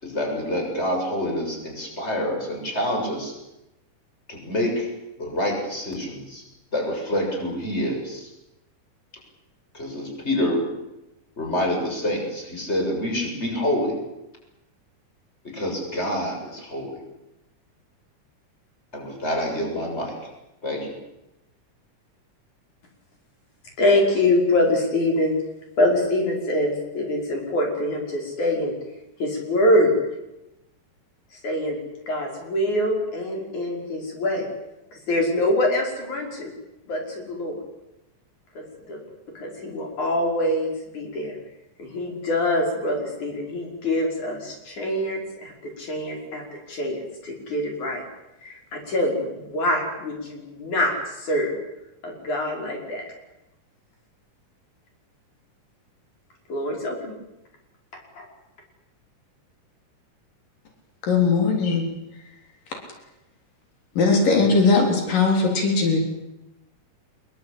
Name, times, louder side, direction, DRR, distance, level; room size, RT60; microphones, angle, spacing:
voice 1, 0.0-3.3 4.3-4.9 5.2-6.4 6.7-8.3 9.7-10.7 11.4-14.0 15.4-17.0 18.9-20.1 20.6-20.9, left 1 dB, 20° left, 1 dB, 7.4 m, -27 dB
voice 2, 23.8-25.3 25.8-28.7 29.2-30.0 31.4-31.8 32.1-34.5 35.1-36.5 36.9-37.6 38.6-39.0 39.4-41.4 41.8-46.4 46.7-47.0 47.2-48.0 48.4-51.5 52.0-53.0 56.5-57.1 58.2-58.3, left 1 dB, 65° left, 1 dB, 7.0 m, -24 dB
voice 3, 61.0-61.8 64.0-66.0, left 4 dB, 85° left, 3 dB, 5.4 m, -19 dB
25.0 x 23.0 x 8.7 m, 0.93 s
omnidirectional pair, 3.7 m